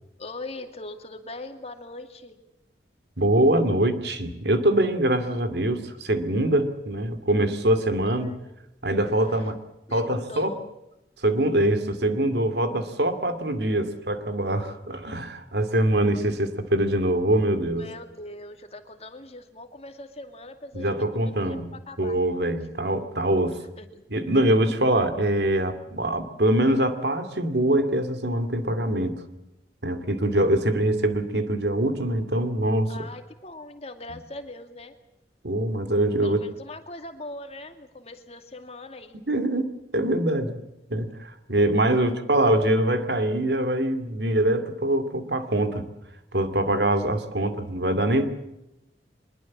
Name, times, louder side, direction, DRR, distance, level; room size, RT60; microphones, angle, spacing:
voice 1, 0.2-2.4 8.1-8.5 9.3-9.5 9.9-10.6 17.8-22.2 23.5-24.3 32.9-34.9 36.2-39.2 42.0-42.1, left 2 dB, 35° left, 7 dB, 2.3 m, -41 dB
voice 2, 3.2-8.3 8.8-9.6 9.9-10.5 11.2-17.9 20.7-21.7 22.0-23.6 24.1-29.2 29.8-33.0 35.4-36.4 39.3-40.6 40.9-45.9 46.3-48.3, right 1 dB, 70° right, 9 dB, 2.5 m, -23 dB
24.0 x 21.5 x 7.4 m, 0.90 s
head